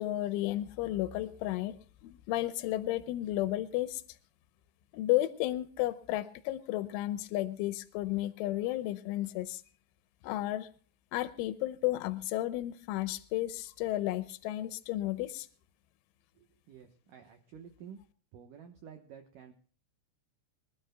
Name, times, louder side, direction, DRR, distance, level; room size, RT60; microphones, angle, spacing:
voice 1, 0.0-1.8 2.0-4.0 4.9-9.6 10.2-10.7 11.1-15.5, left 15 dB, 90° left, 12 dB, 3.2 m, -33 dB
voice 2, 16.4-18.0 18.3-19.5, right 7 dB, 85° right, 6 dB, 1.8 m, -51 dB
25.0 x 12.5 x 2.2 m, 0.43 s
omnidirectional pair, 5.5 m